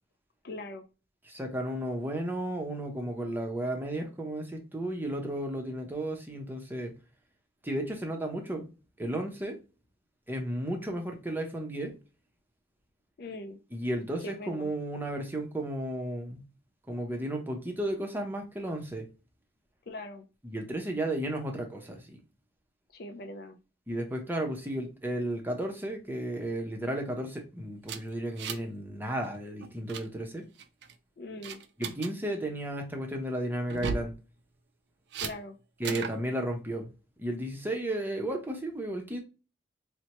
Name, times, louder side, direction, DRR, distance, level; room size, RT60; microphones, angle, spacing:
voice 1, 0.4-0.8 13.2-13.6 14.2-14.7 19.9-20.3 22.9-23.6 31.2-31.6 35.2-35.6, left 2 dB, 55° left, 0.4 m, -41 dB
voice 2, 1.3-6.9 7.6-8.7 9.0-9.6 10.3-11.9 13.7-16.4 16.9-19.1 20.4-22.2 23.9-30.4 31.8-34.1 35.8-36.9 37.2-39.2, right 1 dB, 10° right, 0.6 m, -33 dB
sound 1, 27.8-28.8 29.0-29.3 29.6-30.0 30.6-30.9 31.4-32.1 33.6-34.1 35.1-35.3 35.8-36.2, right 6 dB, 65° right, 0.4 m, -36 dB
4.2 x 2.1 x 2.9 m
head